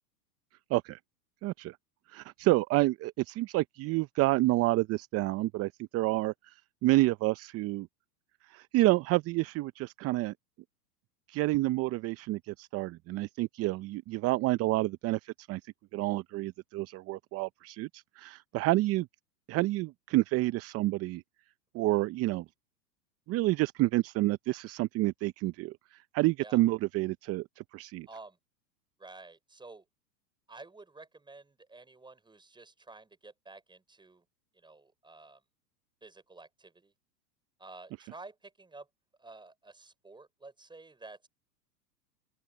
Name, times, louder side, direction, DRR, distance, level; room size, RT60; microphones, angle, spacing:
voice 1, 1.4-1.8 2.1-6.5 6.8-7.9 8.5-10.3 11.3-15.6 15.9-19.1 19.5-21.2 21.7-22.4 23.3-28.1, right 18 dB, 30° right, 0.7 m, -29 dB
voice 2, 28.1-28.4 29.0-29.9 30.5-34.3 34.5-35.4 36.0-36.9 37.6-38.9 39.2-41.3, right 3 dB, 10° right, 6.1 m, -51 dB
open air
hypercardioid pair, 110°, 50 cm